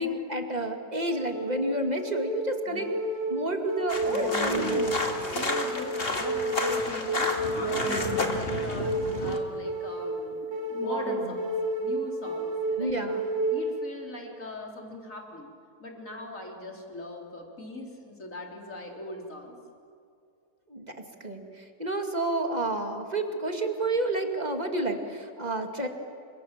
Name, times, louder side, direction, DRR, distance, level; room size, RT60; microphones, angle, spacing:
voice 1, 0.0-2.9 3.3-5.0 12.8-13.3 20.7-20.9 21.2-25.9, right 1 dB, 25° right, 4 dB, 2.4 m, -30 dB
sound 1, 1.1-14.1, right 1 dB, 50° right, 4.8 m, -31 dB
sound 2, 3.9-9.4, left 2 dB, 35° left, 2.6 m, -31 dB
voice 2, 4.2-4.8 5.3-11.5 11.8-13.0 13.5-15.5 15.8-19.6, left 2 dB, 55° left, 1 dB, 4.1 m, -40 dB
30.0 x 26.0 x 7.5 m, 2.4 s
omnidirectional pair, 1.7 m